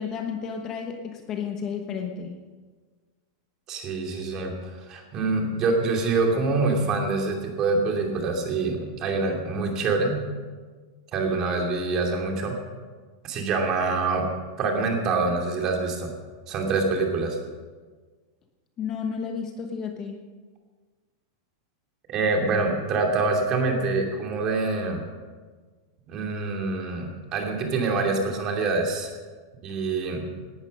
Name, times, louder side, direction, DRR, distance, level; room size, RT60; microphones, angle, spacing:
voice 1, 0.0-2.4 18.8-20.3, left 6 dB, 25° left, 4 dB, 1.1 m, -32 dB
voice 2, 3.7-4.5 4.9-10.2 11.1-12.6 13.2-14.3 14.6-16.1 16.5-17.4 22.1-25.0 26.1-29.2 29.6-30.3, right 3 dB, 25° right, 2 dB, 2.7 m, -25 dB
18.0 x 12.0 x 5.4 m, 1.4 s
supercardioid pair, 170°, 2 cm